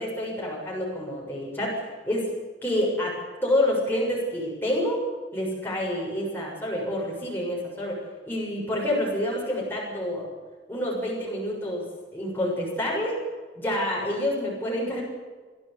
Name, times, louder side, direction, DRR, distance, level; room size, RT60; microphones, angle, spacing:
voice 1, 0.0-2.3 2.6-3.2 3.4-5.0 5.3-8.0 8.2-10.2 10.7-11.8 12.1-13.2 13.5-15.0, left 1 dB, 10° left, -4 dB, 6.9 m, -28 dB
22.5 x 15.5 x 9.6 m, 1.4 s
head